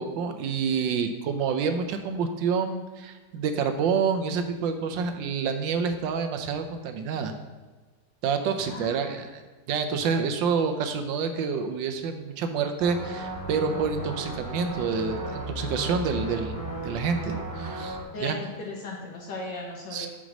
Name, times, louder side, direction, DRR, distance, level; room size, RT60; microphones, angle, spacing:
voice 1, 0.0-7.3 8.2-9.3 9.7-16.6 16.8-18.4 19.9-20.1, right 5 dB, 85° right, 7 dB, 1.4 m, -28 dB
voice 2, 8.6-9.1 18.0-20.1, left 2 dB, 75° left, -2 dB, 1.7 m, -37 dB
sound 1, 12.8-18.0, right 1 dB, 5° left, 1.4 m, -35 dB
6.0 x 4.7 x 6.2 m, 1.3 s
omnidirectional pair, 2.0 m